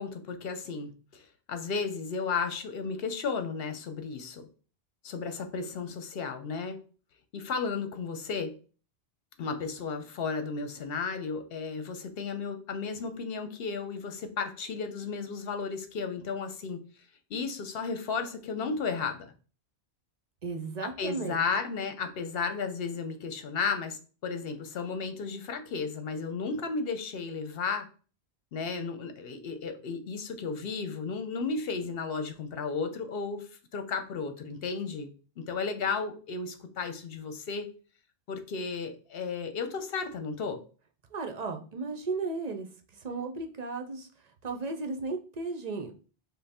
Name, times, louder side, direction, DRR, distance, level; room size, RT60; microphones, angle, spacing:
voice 1, 0.0-4.5 5.0-6.8 7.3-8.5 9.4-16.8 17.3-19.3 20.8-27.9 28.5-35.1 35.4-37.7 38.3-40.6, left 5 dB, 65° left, 7 dB, 0.9 m, -34 dB
voice 2, 20.4-21.4 41.1-42.7 42.9-44.1 44.4-45.9, right 3 dB, 45° right, 5 dB, 0.6 m, -35 dB
5.4 x 2.1 x 4.2 m, 0.39 s
omnidirectional pair, 1.1 m